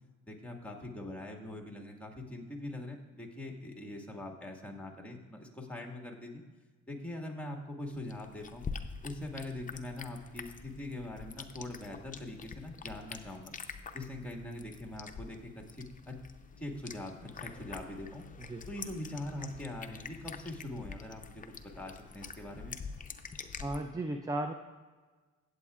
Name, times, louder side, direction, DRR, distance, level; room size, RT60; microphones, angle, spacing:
voice 1, 0.3-6.4 6.9-8.7 9.0-13.5 13.9-16.2 16.6-18.2 18.7-22.8, left 1 dB, 5° left, 1 dB, 1.8 m, -42 dB
sound 1, 7.9-23.8, left 5 dB, 25° left, 0.7 m, -46 dB
voice 2, 23.6-24.5, right 1 dB, 10° right, 5 dB, 0.5 m, -35 dB
16.5 x 8.1 x 2.4 m, 1.3 s
cardioid pair, 90°, 30 cm